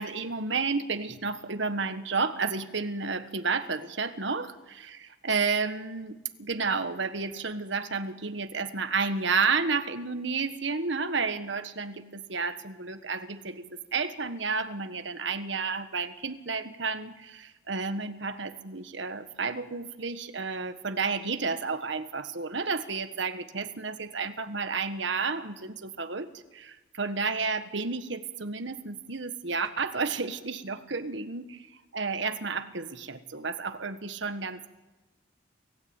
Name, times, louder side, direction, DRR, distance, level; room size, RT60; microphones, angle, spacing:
voice 1, 0.0-26.3 26.5-34.7, right 4 dB, 65° right, 9 dB, 1.6 m, -31 dB
28.5 x 16.0 x 9.0 m, 1.1 s
head